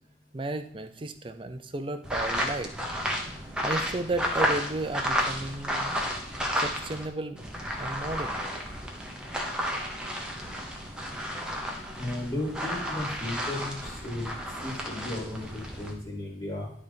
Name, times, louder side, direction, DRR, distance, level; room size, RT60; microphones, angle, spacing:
voice 1, 0.3-2.7 3.6-6.0 6.5-7.5 7.8-8.4, right 2 dB, 25° right, 9 dB, 0.5 m, -33 dB
sound 1, 2.0-7.1 7.4-15.9, equal, 5° right, 1.0 m, -32 dB
voice 2, 12.0-14.3 14.6-16.7, left 1 dB, 20° left, -3 dB, 1.9 m, -35 dB
11.0 x 4.1 x 5.2 m, 0.71 s
head